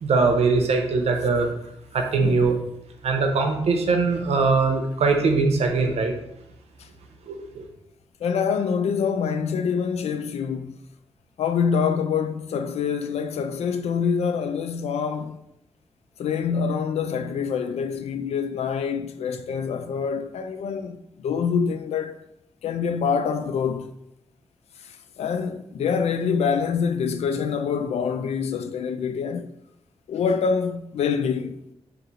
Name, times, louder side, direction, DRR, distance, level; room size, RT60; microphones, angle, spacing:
voice 1, 0.0-1.5 1.9-2.6 3.0-6.1 7.3-7.6, right 4 dB, 85° right, 0.7 m, -21 dB
voice 2, 2.2-2.5 6.8-6.9 8.2-10.8 11.4-15.4 16.2-22.2 22.6-23.9 24.8-29.5 30.1-31.5, left 6 dB, 85° left, 0.4 m, -26 dB
4.1 x 2.6 x 4.0 m
wide cardioid pair, 155°, 11 cm